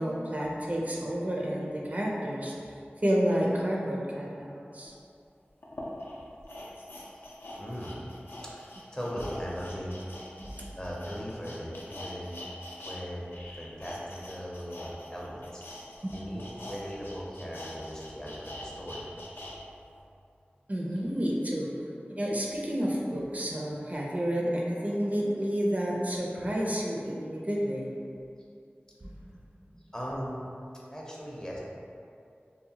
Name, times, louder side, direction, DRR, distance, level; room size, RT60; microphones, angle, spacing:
voice 1, 0.0-2.5 3.0-4.9 10.4-10.5 16.0-16.1 20.7-21.7 22.1-27.9 29.0-29.1, equal, 40° right, -3 dB, 0.4 m, -30 dB
sound 1, 4.9-5.0 5.6-13.0 13.3-19.6 19.9-20.0, left 1 dB, 75° left, 0.4 m, -44 dB
voice 2, 7.6-8.1 8.4-10.1 10.8-12.4 12.8-15.6 16.1-19.5 29.9-30.4 30.9-31.6, equal, 20° left, -4 dB, 0.5 m, -39 dB
2.7 x 2.1 x 2.7 m, 2.5 s
wide cardioid pair, 40°, 4 cm